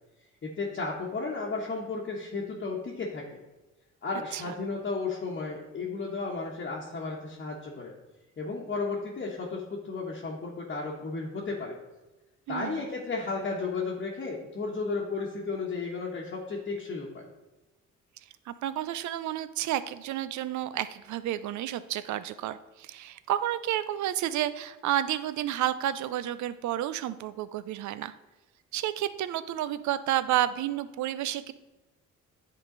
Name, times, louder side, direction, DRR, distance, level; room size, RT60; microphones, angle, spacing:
voice 1, 0.4-3.2 4.0-7.9 8.4-11.8 12.5-17.3, left 4 dB, 40° left, -4 dB, 1.2 m, -33 dB
voice 2, 12.5-12.8 18.5-28.1 28.7-31.5, right 12 dB, 70° right, 14 dB, 0.5 m, -31 dB
9.8 x 3.8 x 3.8 m, 1.1 s
cardioid pair, 90°, 30 cm